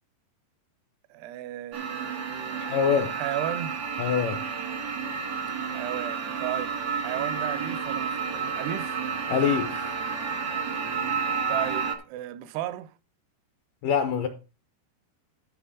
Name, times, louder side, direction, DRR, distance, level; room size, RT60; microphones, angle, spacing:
voice 1, 1.1-3.8 5.7-9.0 11.5-12.9, right 13 dB, 85° right, 2.6 m, -35 dB
sound 1, 1.7-12.0, right 6 dB, 65° right, 1.0 m, -30 dB
voice 2, 2.6-3.1 4.0-4.4 9.3-10.0 13.8-14.3, left 7 dB, 75° left, 2.0 m, -25 dB
12.0 x 5.4 x 5.0 m
omnidirectional pair, 4.7 m